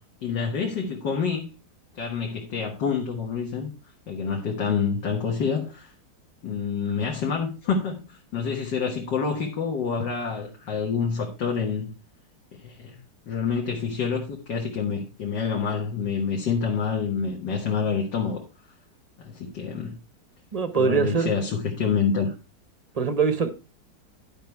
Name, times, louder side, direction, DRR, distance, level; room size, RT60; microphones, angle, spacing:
voice 1, 0.2-1.5 1.9-3.7 4.1-5.9 6.4-11.9 12.6-13.0 13.3-18.4 19.2-20.0 20.8-22.3, left 6 dB, 80° left, 2.0 m, -27 dB
voice 2, 20.5-21.3 23.0-23.5, right 5 dB, 40° right, 0.5 m, -22 dB
11.0 x 5.4 x 4.6 m
omnidirectional pair, 1.9 m